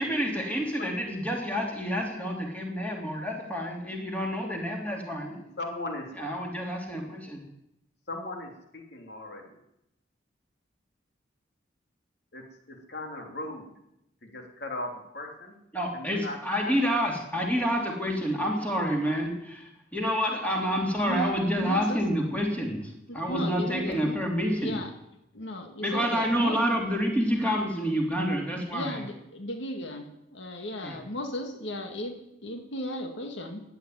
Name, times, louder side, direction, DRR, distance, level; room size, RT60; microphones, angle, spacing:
voice 1, 0.0-5.3 6.2-7.4 15.7-24.8 25.8-29.0 30.8-30.9, equal, 10° left, -1 dB, 3.2 m, -28 dB
voice 2, 5.3-6.1 8.1-9.6 12.3-13.7 14.2-15.5 15.9-17.0, left 2 dB, 60° left, 2 dB, 3.1 m, -38 dB
voice 3, 21.0-22.0 23.1-24.2 24.6-24.9 25.3-26.6 28.7-33.6, equal, 75° left, 4 dB, 2.1 m, -36 dB
14.5 x 9.5 x 9.5 m, 0.84 s
head